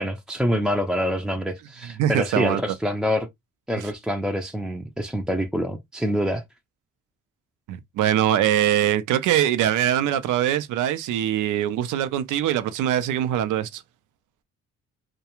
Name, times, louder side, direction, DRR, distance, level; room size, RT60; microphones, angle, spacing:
voice 1, 0.0-3.3 3.7-6.4, equal, ahead, 0.4 m, -26 dB
voice 2, 2.0-2.6 3.8-3.9 7.7-13.8, right 11 dB, 85° right, 0.5 m, -22 dB
2.3 x 2.2 x 2.9 m
cardioid pair, 90°, 30 cm